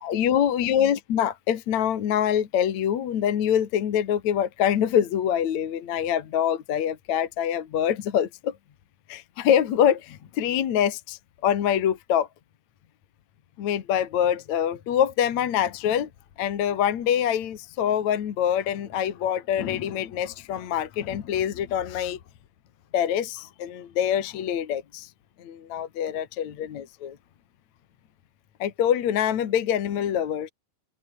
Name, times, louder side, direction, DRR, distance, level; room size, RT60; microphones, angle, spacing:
voice 1, 0.0-8.6 9.1-12.3 13.6-16.1 16.4-22.2 22.9-25.1 25.4-27.2 28.6-30.5, left 9 dB, 55° left, 2.4 m, -25 dB
open air
omnidirectional pair, 5.1 m